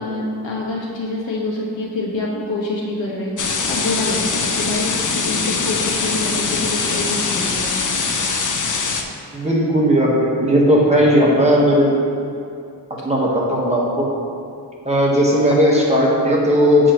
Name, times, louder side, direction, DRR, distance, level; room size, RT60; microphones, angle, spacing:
voice 1, 0.0-7.9, left 2 dB, 90° left, -3 dB, 1.2 m, -26 dB
sound 1, 3.4-9.0, left 4 dB, 45° left, 0.6 m, -22 dB
voice 2, 9.3-12.0 13.0-14.1 14.8-16.9, equal, 15° right, -5 dB, 1.2 m, -16 dB
7.6 x 6.2 x 3.0 m, 2.4 s
wide cardioid pair, 100°, 44 cm